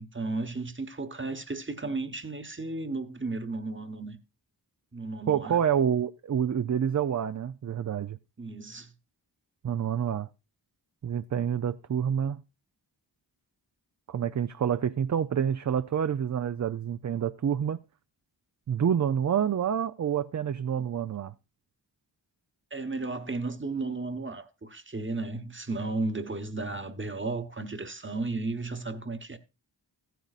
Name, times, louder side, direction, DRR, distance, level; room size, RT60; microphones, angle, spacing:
voice 1, 0.0-4.2 4.9-5.6 8.4-8.9 20.8-20.9 22.7-29.4, right 3 dB, 25° right, 1.1 m, -34 dB
voice 2, 5.3-8.2 9.6-10.3 11.0-12.4 14.1-17.8 18.7-21.3, right 8 dB, 45° right, 0.4 m, -28 dB
15.0 x 9.2 x 2.4 m
wide cardioid pair, 45°, 43 cm